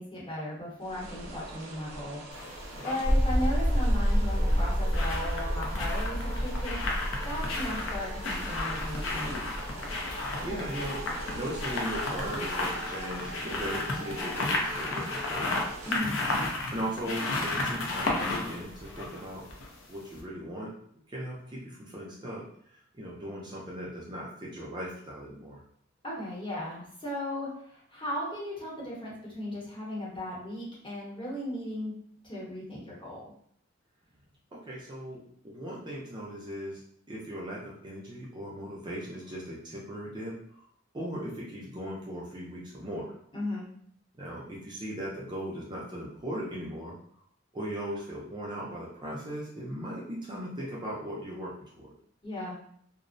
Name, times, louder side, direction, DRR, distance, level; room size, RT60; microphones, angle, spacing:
voice 1, 0.0-2.2 2.8-9.6 15.8-16.2 26.0-31.9 32.2-33.3 43.3-43.7 52.2-52.6, left 1 dB, 25° left, -6 dB, 0.9 m, -36 dB
sound 1, 0.8-16.0, right 1 dB, 90° right, 0.6 m, -42 dB
sound 2, 2.3-3.0 4.3-19.8 20.1-20.2, left 2 dB, 75° left, 0.5 m, -33 dB
sound 3, 3.0-13.1, equal, 50° left, 0.9 m, -30 dB
voice 2, 10.1-15.6 16.7-19.4 19.9-20.7 21.1-22.4 22.9-25.6 34.5-36.8 37.1-40.4 40.9-43.1 44.2-47.0 47.5-51.9, equal, 20° right, -5 dB, 0.4 m, -38 dB
2.5 x 2.0 x 2.5 m, 0.65 s
head